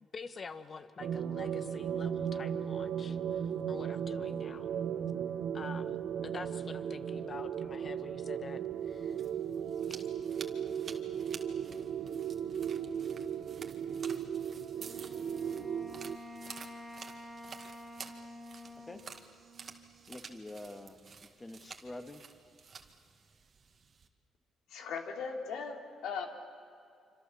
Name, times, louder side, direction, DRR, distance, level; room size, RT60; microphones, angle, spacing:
voice 1, 0.1-3.2 3.7-4.7 5.5-8.6 8.9-9.1, left 5 dB, 40° left, 11 dB, 1.4 m, -46 dB
sound 1, 1.0-16.2, right 8 dB, 65° right, 1.0 m, -36 dB
sound 2, 8.9-24.1, right 5 dB, 45° right, 2.1 m, -51 dB
Wind instrument woodwind instrument, 14.7-20.2, left 1 dB, ahead, 3.9 m, -49 dB
voice 2, 20.1-22.3, left 1 dB, 15° left, 7 dB, 2.1 m, -47 dB
voice 3, 24.7-26.3, left 5 dB, 80° left, 3 dB, 2.9 m, -38 dB
26.5 x 26.0 x 7.2 m, 2.5 s
cardioid pair, 90°, 0 cm